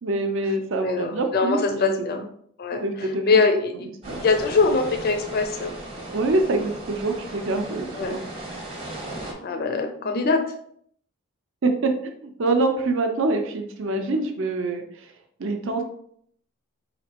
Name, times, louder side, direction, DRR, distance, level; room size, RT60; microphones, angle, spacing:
voice 1, 0.0-2.2 2.7-3.3 4.1-4.2 6.1-8.2 11.6-11.9 12.2-15.1 15.4-15.8, right 2 dB, 60° right, 5 dB, 0.5 m, -25 dB
voice 2, 0.8-2.2 2.6-3.9 4.1-5.7 7.9-8.2 9.4-10.4, left 4 dB, 45° left, 5 dB, 0.4 m, -23 dB
sound 1, 4.0-9.3, right 1 dB, 25° right, 0.9 m, -36 dB
4.2 x 2.9 x 2.9 m, 0.66 s
head